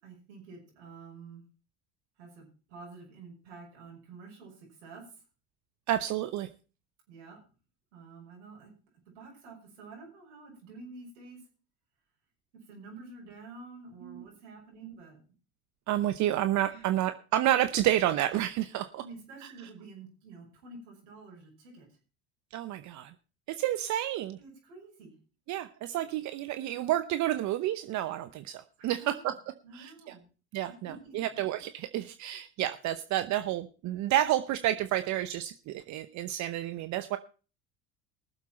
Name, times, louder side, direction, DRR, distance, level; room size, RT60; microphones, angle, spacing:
voice 1, 0.0-1.5 2.2-5.1 7.1-7.4 7.9-8.7 9.1-11.4 12.7-15.2 16.7-16.9 19.0-21.9 24.4-25.1 28.8-29.3 29.6-30.2 30.7-31.4, right 3 dB, 80° right, -1 dB, 6.2 m, -49 dB
voice 2, 5.9-6.5 14.0-14.2 15.9-19.0 22.5-23.1 23.5-24.4 25.5-29.3 29.7-30.1 30.5-37.2, right 13 dB, 55° right, 11 dB, 0.9 m, -30 dB
19.5 x 7.3 x 4.3 m, 0.35 s
hypercardioid pair, 75°, 34 cm